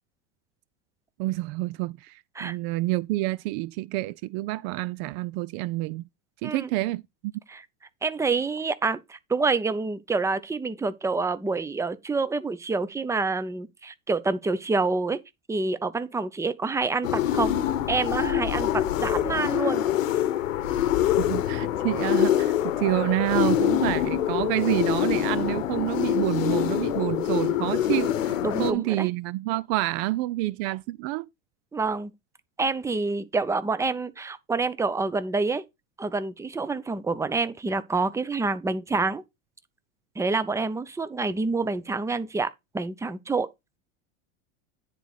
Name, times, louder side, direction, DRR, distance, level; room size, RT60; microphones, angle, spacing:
voice 1, 1.2-6.0 6.4-7.0 21.2-31.3, right 18 dB, 55° right, 0.5 m, -28 dB
voice 2, 8.0-15.2 15.5-17.5 17.9-18.7 19.0-19.9 28.4-29.1 31.7-32.1 32.6-35.6 36.0-39.2 40.2-43.5, right 3 dB, 10° right, 0.7 m, -27 dB
sound 1, 17.0-28.7, left 11 dB, 85° left, 0.9 m, -25 dB
10.0 x 4.1 x 4.9 m
hypercardioid pair, 105°, 38 cm